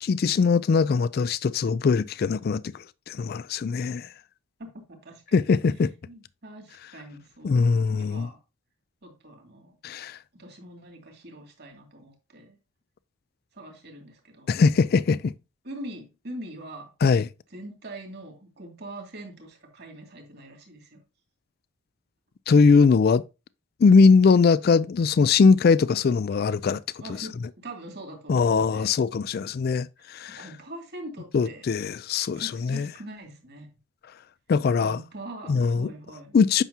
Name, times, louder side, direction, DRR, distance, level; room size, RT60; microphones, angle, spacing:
voice 1, 0.0-4.1 5.3-5.9 7.4-8.3 9.8-10.2 14.5-15.3 17.0-17.3 22.5-23.2 23.8-26.8 28.3-30.5 31.3-32.9 34.5-35.0 35.5-35.9 36.3-36.6, left 5 dB, 45° left, 0.3 m, -21 dB
voice 2, 4.6-5.6 6.1-8.4 9.0-9.8 10.3-12.6 13.5-14.5 15.6-16.9 17.5-21.0 27.0-28.9 30.0-31.6 32.3-33.7 34.8-36.4, right 1 dB, 50° right, 2.4 m, -43 dB
9.1 x 6.0 x 2.8 m
head